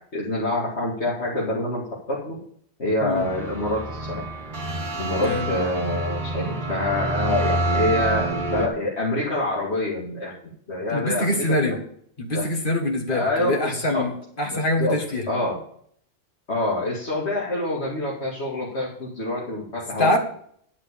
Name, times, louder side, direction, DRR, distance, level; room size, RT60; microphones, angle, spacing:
voice 1, 0.0-2.4 2.8-4.2 5.0-10.3 10.7-11.8 12.3-12.4 13.1-14.0 14.4-15.0 15.3-15.6 16.5-20.2, left 2 dB, 75° left, -5 dB, 2.6 m, -26 dB
sound 1, 3.2-8.7, right 2 dB, 45° right, 1.6 m, -27 dB
voice 2, 5.2-5.6 10.9-11.8 12.2-15.3 20.0-20.2, left 1 dB, 50° left, 3 dB, 1.9 m, -24 dB
11.0 x 5.8 x 6.8 m, 0.63 s
omnidirectional pair, 1.1 m